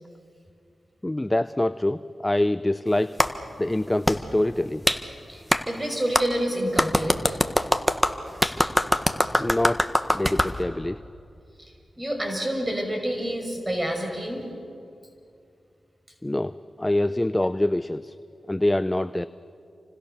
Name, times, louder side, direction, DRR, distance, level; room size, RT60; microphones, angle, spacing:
voice 1, 1.0-3.2 3.6-4.8 9.4-11.0 16.2-18.2 18.5-19.3, left 1 dB, 20° left, 13 dB, 0.6 m, -25 dB
Clapping, 3.2-3.3 4.1-4.2 4.9-5.0 5.5-5.6 6.1-6.3 6.8-10.5, equal, ahead, 1.7 m, -22 dB
voice 2, 5.3-7.4 11.6-14.5, right 1 dB, 25° right, 3 dB, 5.8 m, -28 dB
29.5 x 25.0 x 6.9 m, 2.4 s
cardioid pair, 45°, 0 cm